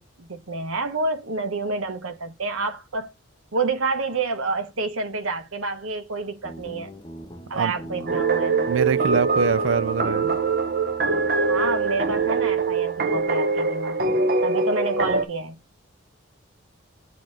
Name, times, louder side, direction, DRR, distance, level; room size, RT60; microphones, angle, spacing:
voice 1, 0.0-3.1 3.5-6.9 7.5-8.7 11.5-14.0 14.4-15.6, right 3 dB, 85° right, 1.1 m, -28 dB
Guitar, 6.4-13.0, right 1 dB, 20° left, 1.1 m, -41 dB
sound 1, 8.1-15.2, right 3 dB, 45° right, 0.8 m, -23 dB
voice 2, 8.7-10.4, right 6 dB, 70° right, 0.4 m, -24 dB
8.5 x 3.0 x 5.2 m
head